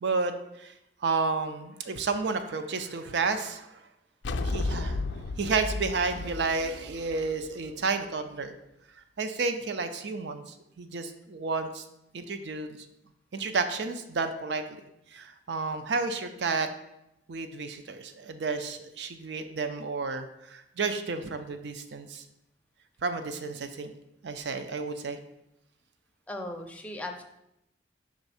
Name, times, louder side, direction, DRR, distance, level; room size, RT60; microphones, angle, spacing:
voice 1, 0.0-0.7 1.0-3.8 4.4-5.0 5.4-8.6 9.2-11.8 12.1-12.8 13.3-14.6 15.1-16.7 17.3-22.2 23.0-23.9 24.2-25.2, right 4 dB, 65° right, 9 dB, 0.5 m, -31 dB
sound 1, 4.2-7.7, left 2 dB, 70° left, 0.4 m, -33 dB
voice 2, 26.3-27.2, left 1 dB, 5° left, 3 dB, 0.5 m, -37 dB
5.1 x 3.5 x 5.6 m, 0.85 s
head